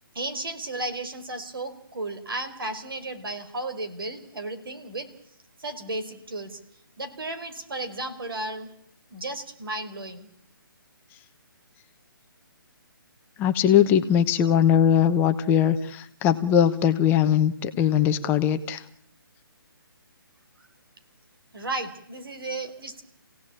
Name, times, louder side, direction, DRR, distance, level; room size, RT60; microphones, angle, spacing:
voice 1, 0.1-5.1 5.6-6.5 7.0-8.7 9.1-10.3 21.5-23.0, right 2 dB, 70° right, 8 dB, 5.0 m, -34 dB
voice 2, 13.4-18.8, left 9 dB, 15° left, 9 dB, 1.0 m, -21 dB
29.0 x 17.0 x 8.8 m, 0.72 s
figure-of-eight pair, 150°, 12 cm